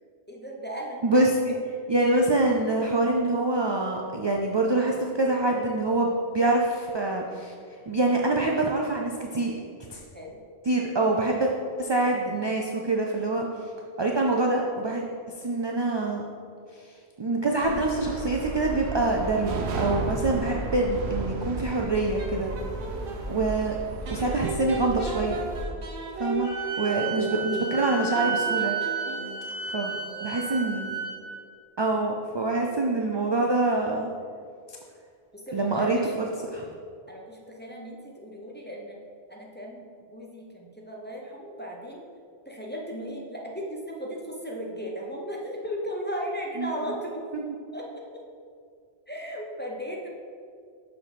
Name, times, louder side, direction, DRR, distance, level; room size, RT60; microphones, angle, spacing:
voice 1, 0.3-1.2 10.1-10.4 23.1-23.4 26.9-27.1 29.9-30.8 35.5-36.6 37.1-39.0 39.3-42.0 42.5-47.2 47.7-48.0 49.1-50.1, equal, 10° left, -2 dB, 0.6 m, -36 dB
voice 2, 1.0-1.5 1.9-7.5 7.9-9.5 9.9-10.0 10.7-11.5 11.8-13.5 14.0-15.0 15.4-16.2 17.2-22.5 23.3-23.8 24.1-25.4 26.2-26.5 26.8-28.8 29.7-29.9 30.2-30.9 31.8-34.1 35.5-36.3 36.5-36.6 46.6-46.7, right 2 dB, 40° right, 0 dB, 0.3 m, -25 dB
sound 1, 17.6-25.6, right 2 dB, 90° right, 1.0 m, -34 dB
sound 2, 21.8-23.2 24.0-29.5, right 3 dB, 65° right, 1.0 m, -35 dB
Wind instrument woodwind instrument, 26.4-31.2, right 5 dB, 60° left, 1.4 m, -32 dB
5.8 x 4.9 x 5.1 m, 2.2 s
omnidirectional pair, 1.1 m